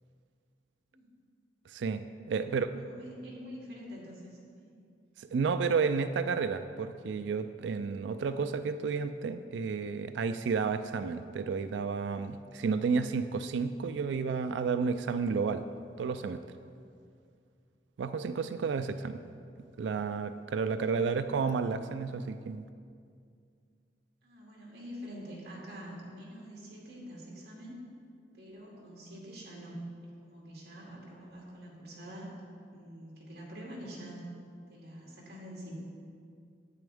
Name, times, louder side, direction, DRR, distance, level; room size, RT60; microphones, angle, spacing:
voice 1, 1.7-2.0 2.3-2.7 5.2-15.6 16.0-16.4 18.0-19.2 19.8-22.7, right 5 dB, 85° right, 10 dB, 0.3 m, -31 dB
voice 2, 2.3-4.7 18.8-19.1 20.9-21.3 24.2-27.8 28.3-29.9 30.2-32.3 32.7-34.3 34.7-35.7, equal, 65° right, -4 dB, 2.4 m, -46 dB
9.4 x 9.2 x 3.5 m, 2.3 s
head